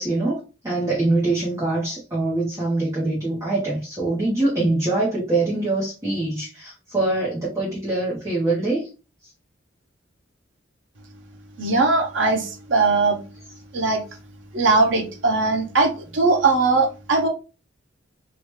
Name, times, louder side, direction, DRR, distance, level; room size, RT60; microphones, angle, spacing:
voice 1, 0.0-8.9, right 2 dB, 15° right, 0.8 m, -24 dB
voice 2, 11.6-13.2 13.7-14.0 14.5-17.3, right 3 dB, 70° right, 0.6 m, -20 dB
3.0 x 2.4 x 3.0 m
head